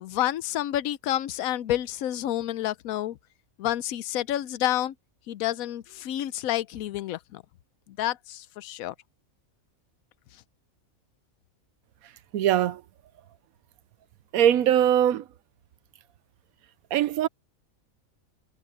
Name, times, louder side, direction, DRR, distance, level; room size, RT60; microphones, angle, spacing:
voice 1, 0.0-3.2 3.6-4.9 5.3-7.4 8.0-8.9, left 13 dB, 85° left, 1.1 m, -29 dB
voice 2, 12.3-12.8 14.3-15.2 16.9-17.3, right 10 dB, 85° right, 1.1 m, -21 dB
omnidirectional pair, 1.5 m